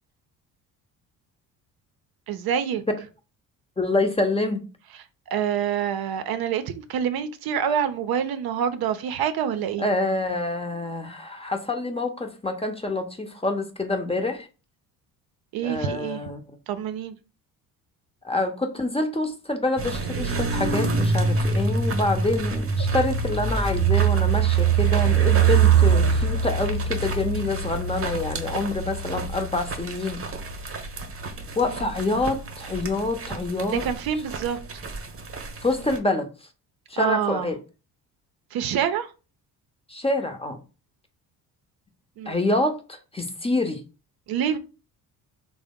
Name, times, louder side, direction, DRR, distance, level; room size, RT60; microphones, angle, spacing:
voice 1, 2.3-2.8 5.3-9.9 15.5-16.2 16.7-17.1 33.7-34.6 37.0-37.5 38.5-39.1 42.2-42.4 44.3-44.6, right 8 dB, 60° right, 0.6 m, -26 dB
voice 2, 3.8-4.6 9.8-14.5 15.6-16.4 18.2-30.2 31.6-33.8 35.6-36.3 36.9-37.6 39.9-40.6 42.3-43.8, left 2 dB, 15° left, 0.8 m, -26 dB
sound 1, 19.8-36.0, right 6 dB, 30° right, 0.9 m, -24 dB
3.5 x 2.1 x 3.6 m
hypercardioid pair, 60°, 43 cm